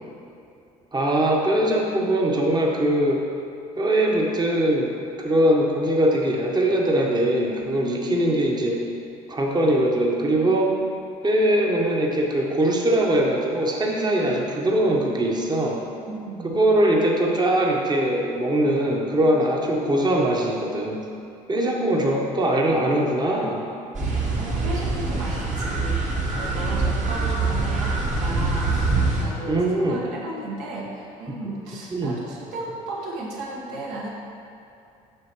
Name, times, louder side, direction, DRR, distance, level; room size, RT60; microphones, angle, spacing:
voice 1, 0.9-3.2 3.8-8.8 9.3-10.8 11.2-15.8 16.4-21.0 21.5-23.7 29.5-30.0 31.9-32.1, right 1 dB, 25° right, -1 dB, 1.0 m, -21 dB
voice 2, 16.1-16.5 24.4-34.1, right 2 dB, 70° right, -3 dB, 1.4 m, -35 dB
sound 1, 23.9-29.2, right 3 dB, 40° right, 1.3 m, -24 dB
7.7 x 6.2 x 3.0 m, 2.7 s
hypercardioid pair, 60°, 18 cm